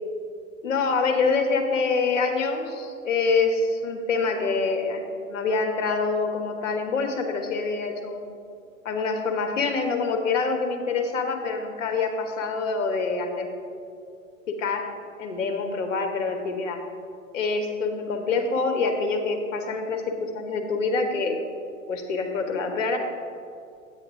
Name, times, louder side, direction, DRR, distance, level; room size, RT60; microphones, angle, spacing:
voice 1, 0.6-5.0 5.3-8.2 8.8-13.5 14.5-14.9 15.2-16.8 17.3-21.4 21.9-23.0, left 4 dB, 60° left, 4 dB, 1.3 m, -26 dB
9.2 x 8.4 x 3.7 m, 2.4 s
figure-of-eight pair, 100°, 41 cm